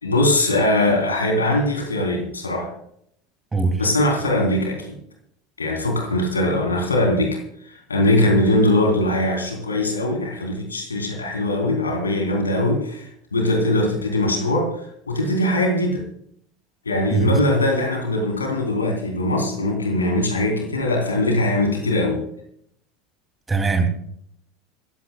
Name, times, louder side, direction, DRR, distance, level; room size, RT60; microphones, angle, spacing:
voice 1, 0.0-2.7 3.8-5.0 5.6-16.0 16.8-22.2, left 1 dB, 80° left, 1 dB, 3.3 m, -21 dB
voice 2, 23.5-23.9, right 4 dB, 15° right, 6 dB, 2.5 m, -20 dB
26.0 x 15.0 x 2.2 m, 0.69 s
figure-of-eight pair, 75°, 0 cm